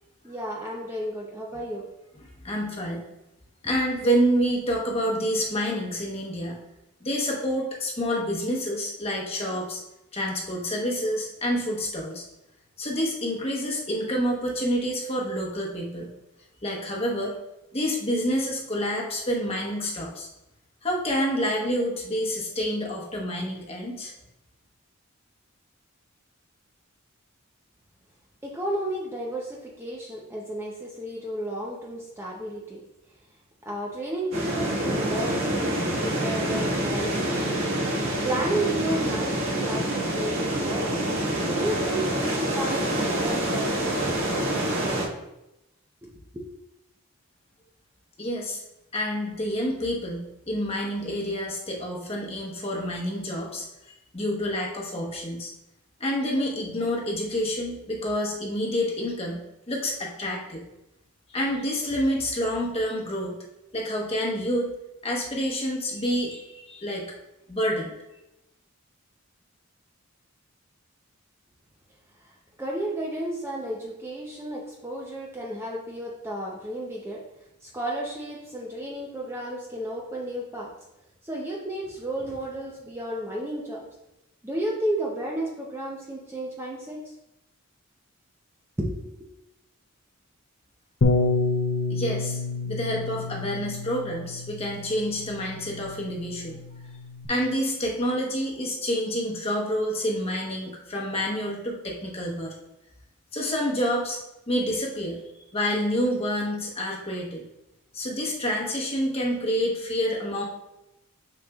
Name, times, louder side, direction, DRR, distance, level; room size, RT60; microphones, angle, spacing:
voice 1, 0.2-1.9 28.4-32.8 33.7-35.7 36.0-37.6 38.2-40.9 41.5-44.0 46.0-46.5 72.6-77.2 77.6-80.7 81.2-83.8 84.4-87.0 88.8-89.3, right 1 dB, 10° right, -3 dB, 0.7 m, -32 dB
voice 2, 2.4-3.0 3.6-6.6 7.0-9.8 10.1-12.2 12.8-16.1 16.6-17.3 17.7-20.3 20.8-24.1 48.2-48.6 48.9-53.6 54.1-55.5 56.0-60.6 61.3-63.4 63.7-64.7 65.0-67.1 67.5-67.9 91.9-96.6 97.3-102.5 103.3-104.2 104.5-105.2 105.5-107.4 107.9-110.4, equal, 25° left, -2 dB, 1.1 m, -28 dB
sound 1, 34.3-45.1, right 1 dB, 65° right, 1.6 m, -26 dB
Bass guitar, 91.0-97.2, left 3 dB, 50° left, 0.6 m, -29 dB
6.5 x 6.5 x 2.4 m, 0.90 s
head